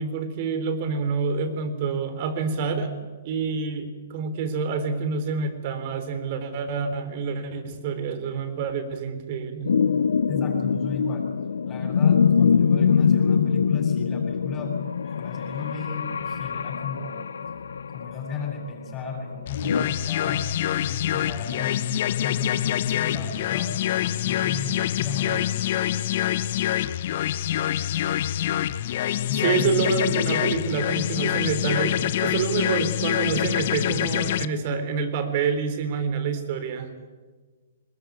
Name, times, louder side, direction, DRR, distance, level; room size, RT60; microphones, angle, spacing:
voice 1, 0.0-2.9 3.2-9.8 29.4-37.0, right 5 dB, 45° right, 10 dB, 3.7 m, -27 dB
sound 1, 9.7-19.8, left 6 dB, 75° left, 0.7 m, -23 dB
voice 2, 10.3-11.3 11.6-14.8 15.0-17.3 17.9-20.5 20.8-25.8 29.3-29.8, left 4 dB, 20° left, 1 dB, 7.7 m, -34 dB
sound 2, 19.5-34.5, left 12 dB, 55° left, 0.9 m, -26 dB
21.0 x 20.5 x 9.4 m, 1.3 s
hypercardioid pair, 130°, 0 cm